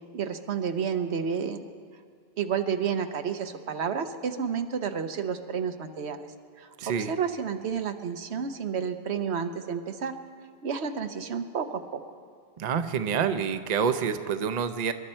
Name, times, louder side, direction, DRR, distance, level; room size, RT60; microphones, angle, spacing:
voice 1, 0.1-1.6 2.4-6.3 6.6-10.2 10.6-12.0, right 7 dB, 85° right, 8 dB, 1.1 m, -31 dB
voice 2, 6.8-7.1 12.6-14.9, right 7 dB, 45° right, 9 dB, 0.7 m, -27 dB
25.0 x 12.0 x 4.4 m, 2.2 s
omnidirectional pair, 1.1 m